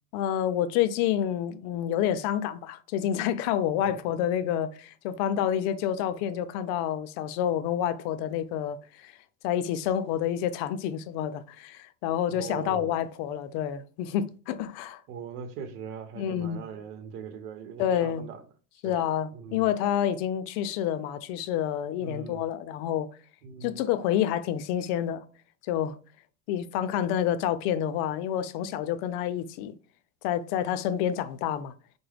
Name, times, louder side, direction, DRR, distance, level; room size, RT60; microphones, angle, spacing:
voice 1, 0.1-9.1 9.4-15.0 16.2-16.6 17.8-18.3 18.8-23.1 23.6-25.2 25.7-26.0 26.5-29.8 30.2-31.7, left 10 dB, 65° left, 0.5 m, -28 dB
voice 2, 12.3-12.9 15.1-18.4 18.8-19.0 19.3-19.7 22.0-22.4 23.4-23.7, right 6 dB, 85° right, 0.9 m, -40 dB
4.6 x 2.2 x 3.3 m
supercardioid pair, 125°, 45 cm